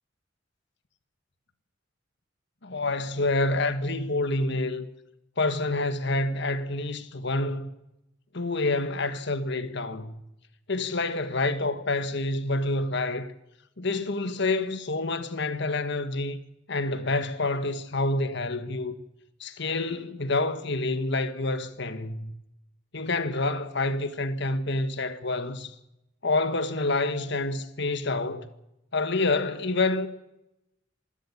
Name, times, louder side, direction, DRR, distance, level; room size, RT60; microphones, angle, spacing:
voice 1, 2.6-4.9 5.4-7.7 8.3-10.2 10.7-13.3 13.8-16.4 16.7-18.9 19.4-22.3 22.9-25.8 26.2-28.5 28.9-30.1, left 2 dB, 65° left, 1.6 m, -28 dB
25.0 x 13.0 x 8.7 m
head